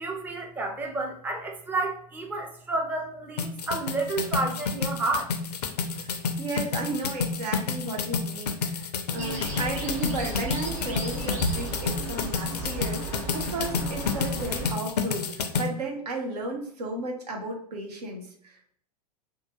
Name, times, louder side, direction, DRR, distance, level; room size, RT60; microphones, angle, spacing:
voice 1, 0.0-5.3, right 2 dB, 10° right, 2 dB, 0.4 m, -30 dB
sound 1, 3.4-15.7, left 5 dB, 80° left, 0.4 m, -30 dB
voice 2, 5.9-18.8, right 2 dB, 80° right, 1 dB, 0.8 m, -34 dB
sound 2, 9.2-14.7, right 2 dB, 35° right, 1.2 m, -34 dB
2.7 x 2.3 x 2.9 m, 0.63 s
figure-of-eight pair, 90°, 20 cm